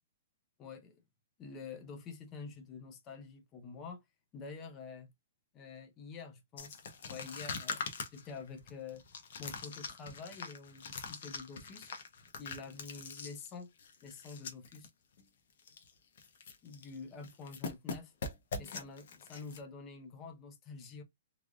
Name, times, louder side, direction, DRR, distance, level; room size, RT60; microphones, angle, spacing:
voice 1, 0.6-1.0 1.4-4.0 4.3-5.1 5.5-6.8 7.1-9.0 9.4-11.9 12.4-13.7 14.0-14.9 16.6-18.1 18.6-21.0, left 5 dB, 20° left, 0.5 m, -47 dB
sound 1, 6.6-14.9 15.2-15.3 15.6-15.9 16.2-17.0 17.2-19.6, left 4 dB, 50° left, 0.8 m, -43 dB
3.2 x 2.4 x 2.3 m
hypercardioid pair, 170°, 0 cm